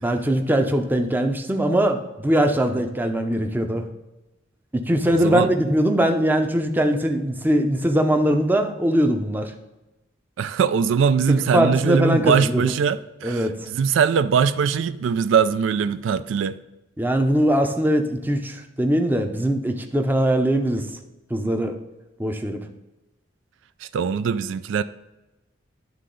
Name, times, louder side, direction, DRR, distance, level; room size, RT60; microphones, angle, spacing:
voice 1, 0.0-3.9 4.7-9.5 11.3-12.7 13.2-13.7 17.0-20.9 21.3-21.8 22.2-22.6, right 1 dB, 10° right, 0.6 m, -21 dB
voice 2, 5.1-5.5 10.4-16.6 23.8-24.8, right 6 dB, 75° right, 0.3 m, -21 dB
11.0 x 3.7 x 3.8 m
head